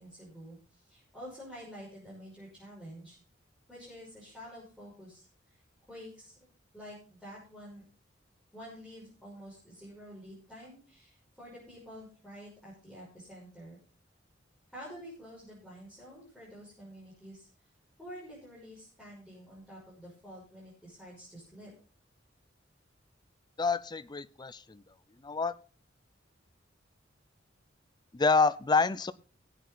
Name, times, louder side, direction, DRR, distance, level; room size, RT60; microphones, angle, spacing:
voice 1, 0.0-3.2 3.7-5.6 5.9-6.5 6.7-7.8 8.5-13.8 14.7-17.5 18.0-21.7, equal, 5° left, -9 dB, 5.9 m, -49 dB
voice 2, 23.6-24.8 25.2-25.6 28.1-29.1, left 4 dB, 20° left, 15 dB, 0.5 m, -27 dB
18.5 x 8.3 x 4.0 m, 0.37 s
head